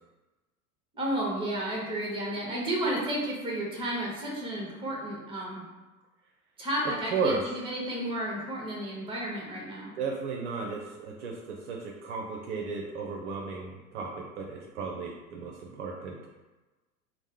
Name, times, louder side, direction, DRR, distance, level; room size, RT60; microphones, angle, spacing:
voice 1, 0.9-5.7 6.6-9.9, right 1 dB, 10° right, -2 dB, 0.8 m, -32 dB
voice 2, 10.0-16.3, right 4 dB, 50° right, -1 dB, 0.6 m, -34 dB
3.1 x 2.1 x 3.5 m, 1.2 s
figure-of-eight pair, 85°, 44 cm